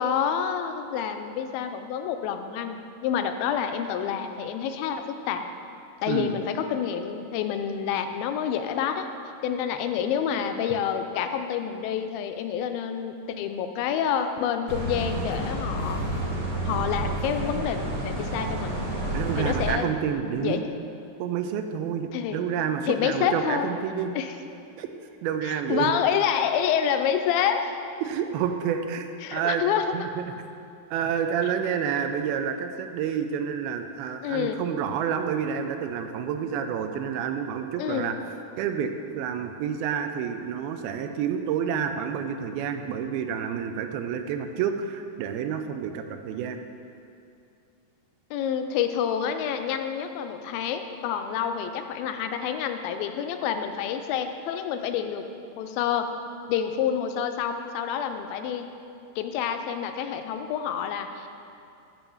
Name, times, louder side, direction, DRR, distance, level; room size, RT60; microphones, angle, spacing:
voice 1, 0.0-2.8 3.0-5.5 6.0-9.1 9.4-16.0 16.6-18.8 19.0-19.9 20.4-20.7 22.1-22.4 22.9-23.7 24.1-24.3 25.4-27.8 29.2-30.1 34.2-34.7 37.8-38.1 48.3-55.3 55.6-56.1 56.5-58.7 59.2-61.3, left 8 dB, 80° left, 7 dB, 2.3 m, -28 dB
voice 2, 6.1-6.4 19.1-20.6 21.2-24.2 24.8-24.9 25.2-25.9 28.0-29.6 29.9-30.2 30.9-38.2 38.6-46.6, right 8 dB, 90° right, 7 dB, 2.5 m, -29 dB
sound 1, 14.7-19.7, right 1 dB, 50° right, 1.9 m, -30 dB
10.5 x 3.6 x 7.0 m, 2.6 s
omnidirectional pair, 4.3 m